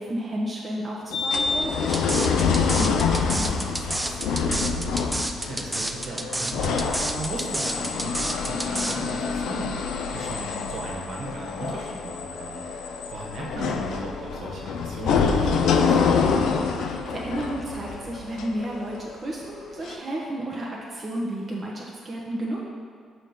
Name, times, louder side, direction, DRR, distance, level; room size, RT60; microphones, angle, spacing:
voice 1, 0.0-4.2 16.8-22.6, right 1 dB, 30° right, -4 dB, 0.9 m, -32 dB
sound 1, 1.1-19.3 19.9-20.0, left 5 dB, 80° left, 0.5 m, -26 dB
sound 2, 1.9-9.0, right 1 dB, 15° right, 0.5 m, -29 dB
voice 2, 5.5-16.5, right 2 dB, 65° right, -3 dB, 1.5 m, -36 dB
6.3 x 3.6 x 5.4 m, 2.1 s
cardioid pair, 90°, 0 cm